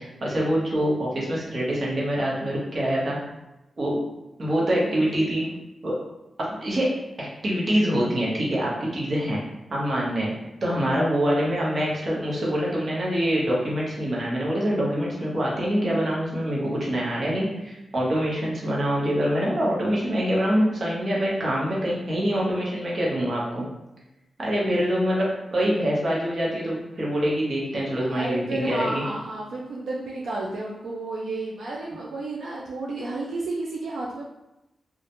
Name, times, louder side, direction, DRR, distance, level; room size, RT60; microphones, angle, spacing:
voice 1, 0.0-3.2 3.8-4.0 4.4-5.4 5.8-5.9 6.4-6.9 7.2-9.4 9.7-10.3 10.6-23.6 24.4-29.0, equal, 50° right, -5 dB, 0.9 m, -25 dB
voice 2, 4.6-5.5 27.6-27.8 28.1-34.3, right 2 dB, 85° right, -3 dB, 0.3 m, -32 dB
2.3 x 2.1 x 2.8 m, 0.95 s
wide cardioid pair, 95°, 0 cm